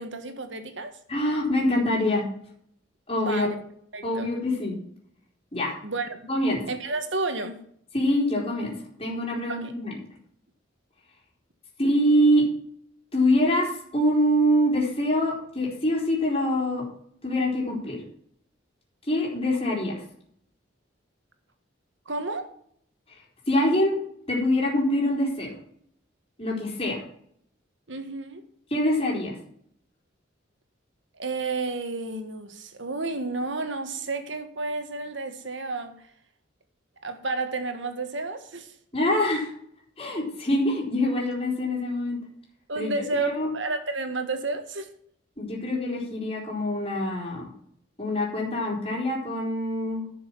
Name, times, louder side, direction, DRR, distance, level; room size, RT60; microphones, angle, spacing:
voice 1, 0.0-0.9 3.2-3.6 3.9-4.3 5.8-6.2 6.7-7.6 9.5-9.7 22.0-22.5 27.9-28.4 31.2-36.1 37.0-38.7 42.7-44.9, right 3 dB, 70° right, 1.6 m, -31 dB
voice 2, 1.1-2.2 3.1-3.5 4.0-4.8 5.5-5.7 6.3-6.6 7.9-8.7 9.0-10.0 11.8-12.4 13.1-16.8 17.2-18.0 19.1-20.0 23.5-24.0 24.3-25.5 26.4-27.0 28.7-29.4 38.9-39.5 40.0-42.2 42.8-42.9 43.2-43.5 45.4-47.5 48.0-50.0, left 1 dB, 30° left, 4.0 m, -24 dB
11.0 x 6.7 x 7.3 m
head